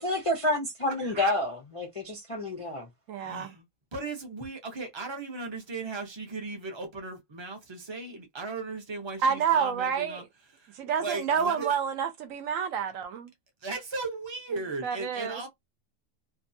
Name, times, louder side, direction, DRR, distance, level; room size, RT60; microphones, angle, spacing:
voice 1, 0.0-2.9, left 1 dB, 55° left, 0.3 m, -29 dB
voice 2, 1.0-1.3 3.2-3.6 3.9-10.2 10.5-11.7 13.6-15.5, right 3 dB, 30° right, 0.5 m, -37 dB
voice 3, 3.1-3.5 9.2-10.2 10.7-13.3 14.8-15.4, right 7 dB, 70° right, 1.0 m, -28 dB
2.7 x 2.3 x 2.6 m
omnidirectional pair, 1.5 m